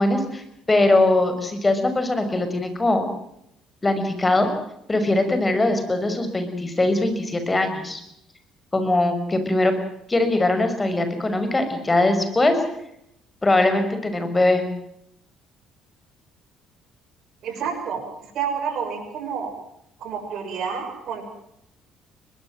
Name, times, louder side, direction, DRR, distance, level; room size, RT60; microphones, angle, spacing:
voice 1, 0.0-3.0 3.8-4.5 4.9-8.0 8.7-9.7 10.1-12.5 13.4-14.6, left 2 dB, 25° left, 8 dB, 5.9 m, -21 dB
voice 2, 17.4-18.0 18.3-19.5 20.0-21.2, right 7 dB, 60° right, 7 dB, 6.4 m, -29 dB
23.5 x 20.5 x 7.6 m, 0.76 s
hypercardioid pair, 60°, 0 cm